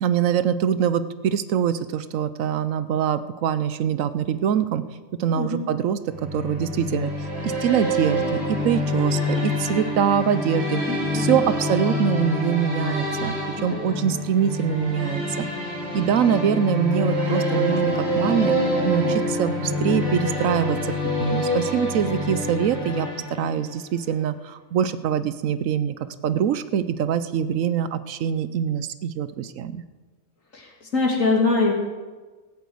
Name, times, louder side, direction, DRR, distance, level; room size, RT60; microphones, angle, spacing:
voice 1, 0.0-4.8 5.2-7.1 7.4-10.8 11.1-13.4 13.6-18.6 18.8-20.8 21.2-25.9 26.2-29.8, right 8 dB, 80° right, 13 dB, 1.1 m, -24 dB
voice 2, 5.3-5.7 10.9-11.0 11.3-11.5 13.6-14.1 30.5-31.7, left 3 dB, 80° left, 0 dB, 3.0 m, -24 dB
sound 1, 6.1-23.8, left 1 dB, 55° right, 4.0 m, -26 dB
15.0 x 8.3 x 7.8 m, 1.3 s
omnidirectional pair, 1.3 m